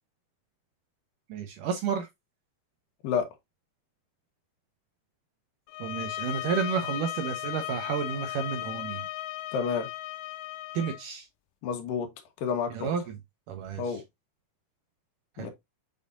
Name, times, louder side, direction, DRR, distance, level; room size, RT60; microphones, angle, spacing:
voice 1, 1.3-2.1 5.8-9.1 10.7-11.3 12.7-13.2 13.5-14.0 15.4-15.5, right 7 dB, 90° right, 1.8 m, -31 dB
sound 1, 5.7-11.0, left 15 dB, 85° left, 2.3 m, -36 dB
voice 2, 9.5-9.9 11.6-12.1 12.4-12.9 13.8-14.0 15.4-15.5, left 6 dB, 65° left, 2.6 m, -29 dB
7.7 x 5.2 x 2.6 m
omnidirectional pair, 4.9 m